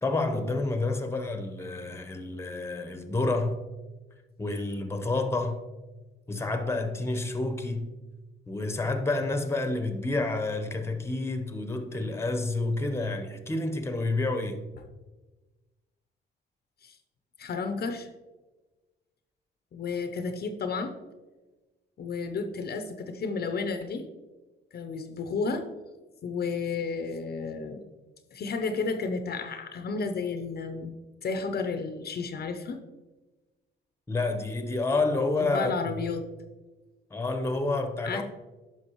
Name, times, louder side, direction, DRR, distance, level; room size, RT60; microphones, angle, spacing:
voice 1, 0.0-3.6 4.4-5.6 6.3-7.9 8.5-14.6 34.1-35.7 37.1-38.2, left 2 dB, 10° left, 0.9 m, -29 dB
voice 2, 17.4-18.1 19.7-20.9 22.0-24.1 24.7-25.7 26.2-27.8 28.3-30.9 31.2-32.8 35.4-36.3 38.1-38.2, left 4 dB, 50° left, 0.7 m, -32 dB
9.7 x 5.9 x 3.1 m
cardioid pair, 90°, 20 cm